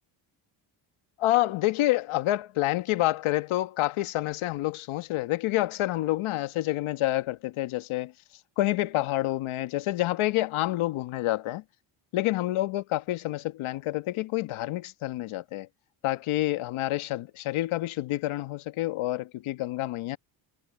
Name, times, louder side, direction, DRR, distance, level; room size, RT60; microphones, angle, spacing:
voice 1, 1.2-8.1 8.6-11.6 12.1-15.7 16.0-20.2, left 16 dB, 80° left, 1.6 m, -28 dB
cardioid pair, 95°, 48 cm